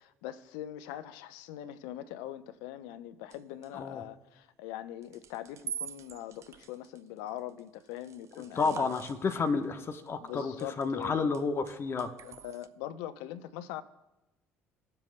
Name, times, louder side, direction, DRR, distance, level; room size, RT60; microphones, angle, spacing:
voice 1, 0.0-8.9 10.2-11.3 12.2-13.8, left 12 dB, 65° left, 0.7 m, -42 dB
sound 1, 3.3-3.7 5.0-9.6 10.0-11.1 11.3-12.7, right 8 dB, 45° right, 0.6 m, -45 dB
voice 2, 8.6-12.1, left 4 dB, 35° left, 1.0 m, -31 dB
19.0 x 7.5 x 2.2 m
figure-of-eight pair, 55°, 7 cm